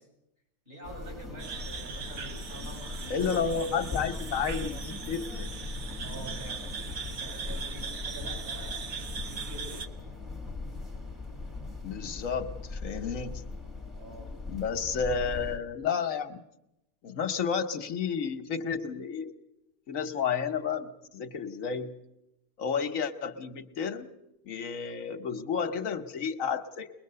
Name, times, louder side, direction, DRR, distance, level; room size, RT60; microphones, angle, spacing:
voice 1, 0.7-4.2 6.0-6.7 7.0-9.9 13.9-14.4, right 1 dB, 45° right, -1 dB, 8.0 m, -46 dB
sound 1, 0.8-15.6, left 3 dB, ahead, 1.7 m, -39 dB
sound 2, 1.4-9.9, right 6 dB, 85° right, 1.6 m, -40 dB
voice 2, 3.1-5.5 11.8-13.4 14.5-16.4 17.0-19.3 19.9-21.9 22.6-24.1 24.4-26.9, left 6 dB, 75° left, 7 dB, 1.3 m, -31 dB
22.0 x 21.0 x 6.7 m, 0.90 s
omnidirectional pair, 1.4 m